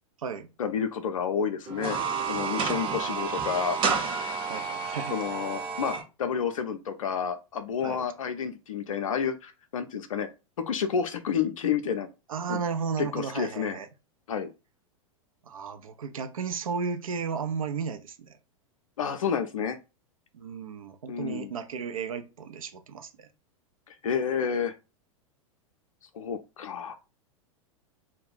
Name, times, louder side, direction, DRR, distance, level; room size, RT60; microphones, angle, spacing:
voice 1, 0.6-2.0 2.3-3.8 4.2-4.3 5.1-10.3 10.7-12.1 12.5-12.6 13.0-13.8 14.3-14.5 19.0-19.8 21.1-21.5 23.9-24.7 26.1-27.0, left 7 dB, 75° left, 0.4 m, -30 dB
sound 1, 1.7-6.0, right 5 dB, 30° right, 0.6 m, -30 dB
voice 2, 4.5-5.2 7.8-8.0 12.3-13.9 15.5-18.4 20.3-23.3, right 6 dB, 75° right, 0.5 m, -34 dB
2.3 x 2.0 x 3.8 m
figure-of-eight pair, 95°, 17 cm